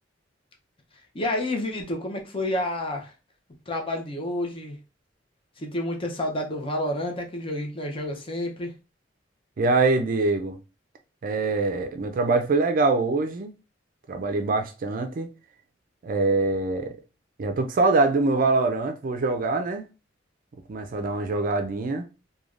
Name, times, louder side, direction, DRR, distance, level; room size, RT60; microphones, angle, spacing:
voice 1, 1.1-3.1 3.7-4.8 5.6-8.7, left 1 dB, 30° left, 0.6 m, -29 dB
voice 2, 9.6-10.6 11.2-13.5 14.1-15.3 16.0-17.0 17.4-19.9 20.7-22.1, right 3 dB, 50° right, 0.4 m, -24 dB
3.2 x 2.3 x 2.4 m
head